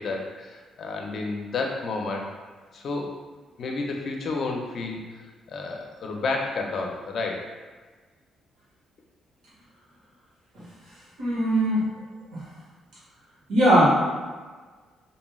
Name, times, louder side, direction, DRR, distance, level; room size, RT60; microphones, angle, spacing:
voice 1, 0.0-2.3 2.7-3.1 3.6-5.2 5.5-7.5, left 3 dB, 60° left, 1 dB, 0.5 m, -31 dB
voice 2, 11.2-11.9 12.3-12.4 13.5-13.9, right 1 dB, 80° right, -10 dB, 1.3 m, -20 dB
3.0 x 2.6 x 2.3 m, 1.4 s
cardioid pair, 90°, 0 cm